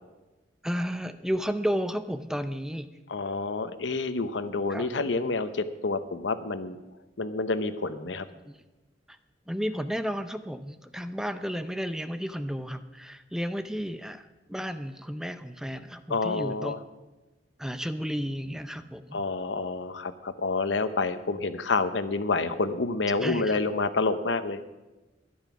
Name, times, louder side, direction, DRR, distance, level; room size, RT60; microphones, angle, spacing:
voice 1, 0.6-2.9 4.7-5.1 8.5-8.6 9.1-9.2 9.5-14.2 14.5-16.8 17.6-19.2 23.1-23.6, equal, 5° right, 10 dB, 0.5 m, -32 dB
voice 2, 3.1-6.8 7.2-8.3 16.1-16.8 19.1-24.6, left 3 dB, 90° left, 11 dB, 0.8 m, -28 dB
12.5 x 10.5 x 6.0 m, 1.1 s
head